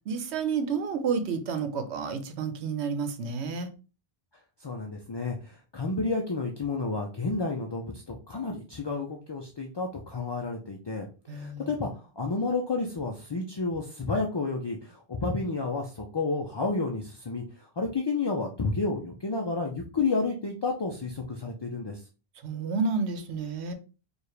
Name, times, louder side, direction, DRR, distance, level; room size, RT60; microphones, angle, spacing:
voice 1, 0.1-3.7 11.3-11.7 22.4-23.7, right 5 dB, 80° right, 1.0 m, -30 dB
voice 2, 4.6-17.4 17.8-22.0, left 3 dB, 35° left, 0.4 m, -31 dB
4.7 x 2.5 x 3.2 m
omnidirectional pair, 1.1 m